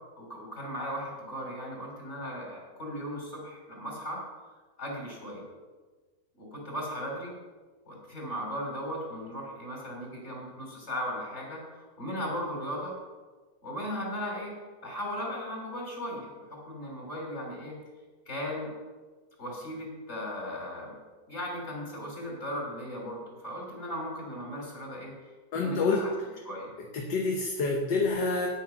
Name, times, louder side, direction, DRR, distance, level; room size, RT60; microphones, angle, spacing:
voice 1, 0.1-4.2 4.8-5.4 6.4-7.3 7.9-13.0 13.6-14.6 14.8-17.7 18.3-18.7 19.4-21.0 21.3-25.1 25.5-26.1 26.5-26.7, equal, 35° left, -2 dB, 3.8 m, -37 dB
voice 2, 25.5-26.0 26.9-28.5, left 3 dB, 70° left, 1 dB, 1.7 m, -27 dB
9.5 x 8.5 x 5.9 m, 1.3 s
omnidirectional pair, 2.0 m